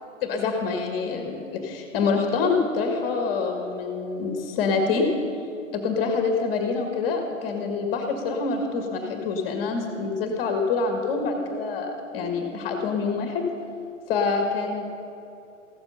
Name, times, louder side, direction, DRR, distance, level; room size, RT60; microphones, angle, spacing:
voice 1, 0.2-5.1 5.7-13.4 14.1-14.9, left 4 dB, 25° left, 3 dB, 1.6 m, -26 dB
15.0 x 13.0 x 5.6 m, 2.8 s
figure-of-eight pair, 120°, 39 cm